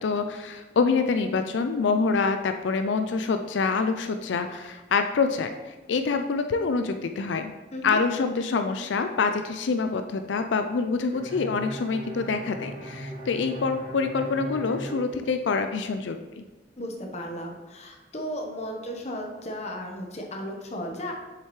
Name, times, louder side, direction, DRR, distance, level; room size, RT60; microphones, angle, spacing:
voice 1, 0.0-7.5 7.8-16.4, left 4 dB, 90° left, 7 dB, 0.4 m, -26 dB
Bowed string instrument, 11.1-15.9, right 1 dB, 40° right, 1.9 m, -38 dB
voice 2, 16.8-21.1, equal, 40° left, 1 dB, 1.1 m, -35 dB
7.4 x 6.7 x 3.2 m, 1.2 s
head